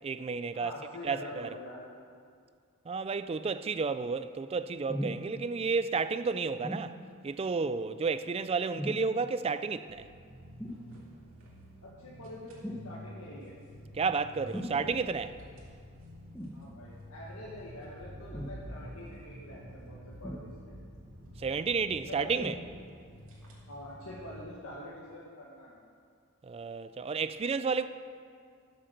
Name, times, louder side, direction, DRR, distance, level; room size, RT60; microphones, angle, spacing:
voice 1, 0.0-0.7 1.0-1.5 2.9-7.0 7.2-10.1 13.9-15.3 21.4-22.6 26.4-27.9, right 4 dB, 30° right, 0.3 m, -31 dB
voice 2, 0.5-1.8 11.8-13.6 14.4-15.0 16.5-20.8 22.1-22.3 23.6-25.8, left 1 dB, 85° left, 1.8 m, -46 dB
sound 1, 4.9-5.2 6.6-6.9 8.8-9.1 10.6-10.8 12.6-12.9 14.5-14.8 16.3-16.6 18.3-18.6 20.2-20.8 22.3-22.6 23.4-23.5, equal, 5° left, 1.3 m, -37 dB
sound 2, 9.9-24.4, equal, 75° right, 2.4 m, -49 dB
11.0 x 7.5 x 6.6 m
head